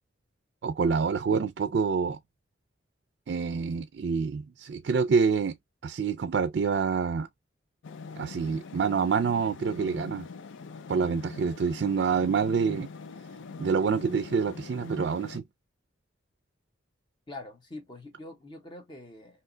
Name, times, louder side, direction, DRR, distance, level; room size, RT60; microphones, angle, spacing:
voice 1, 0.6-2.2 3.3-5.6 5.8-7.3 8.2-10.3 10.9-12.9 13.6-15.4, right 5 dB, 60° right, 0.3 m, -27 dB
sound 1, 7.8-15.4, left 4 dB, 80° left, 0.4 m, -43 dB
voice 2, 17.3-19.4, left 2 dB, 25° left, 0.7 m, -44 dB
2.8 x 2.1 x 3.7 m
head